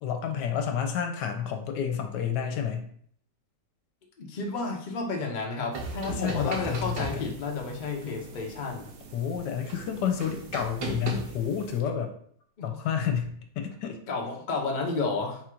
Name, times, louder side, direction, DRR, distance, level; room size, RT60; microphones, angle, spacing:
voice 1, 0.0-2.9 6.1-7.2 9.1-12.1 12.6-14.0, left 8 dB, 80° left, 5 dB, 1.2 m, -30 dB
voice 2, 4.2-8.9 12.6-12.8 14.1-15.4, left 3 dB, 55° left, 0 dB, 0.5 m, -31 dB
sound 1, 5.7-11.8, right 3 dB, 70° right, 1.2 m, -38 dB
4.0 x 2.4 x 4.4 m, 0.62 s
omnidirectional pair, 1.9 m